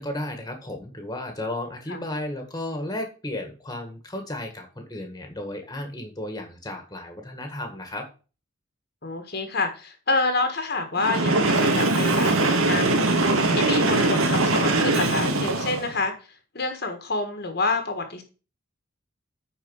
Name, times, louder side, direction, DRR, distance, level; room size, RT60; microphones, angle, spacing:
voice 1, 0.0-8.1, left 1 dB, 20° left, 4 dB, 1.8 m, -34 dB
voice 2, 9.0-16.1 16.5-18.2, left 3 dB, 50° left, 7 dB, 1.6 m, -28 dB
Train, 11.0-16.0, right 2 dB, 85° right, 1.7 m, -21 dB
9.5 x 4.5 x 6.4 m, 0.34 s
head